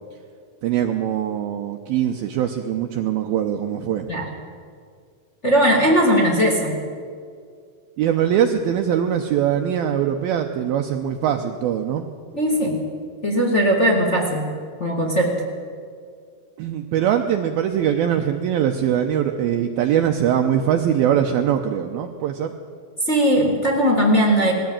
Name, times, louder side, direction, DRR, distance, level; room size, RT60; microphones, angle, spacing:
voice 1, 0.6-4.1 8.0-12.1 16.6-22.5, right 9 dB, 85° right, 4 dB, 2.1 m, -22 dB
voice 2, 5.4-6.7 12.3-12.8 13.2-14.4 14.8-15.4 23.0-24.5, equal, 30° left, 0 dB, 1.3 m, -18 dB
20.5 x 15.0 x 8.9 m, 2.2 s
omnidirectional pair, 5.4 m